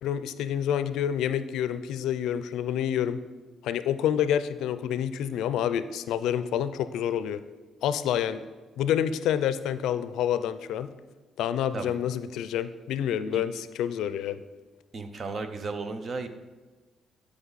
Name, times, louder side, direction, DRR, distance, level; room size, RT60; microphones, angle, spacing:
voice 1, 0.0-3.2 3.6-7.4 7.8-8.4 8.8-10.9 11.4-14.4, left 9 dB, 85° left, 13 dB, 0.4 m, -28 dB
voice 2, 14.9-16.3, right 3 dB, 45° right, 9 dB, 0.8 m, -34 dB
11.5 x 5.1 x 4.0 m, 1.3 s
cardioid pair, 90°, 0 cm